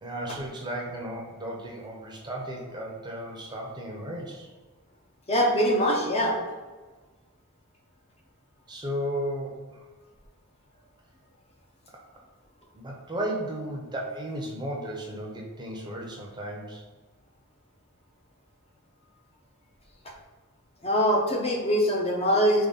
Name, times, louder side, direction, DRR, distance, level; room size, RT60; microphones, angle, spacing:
voice 1, 0.0-4.5 8.7-9.9 12.7-16.8, right 1 dB, 20° right, -1 dB, 0.6 m, -34 dB
voice 2, 5.3-6.4 20.8-22.7, equal, 30° left, 0 dB, 0.6 m, -23 dB
3.7 x 3.0 x 4.0 m, 1.3 s
head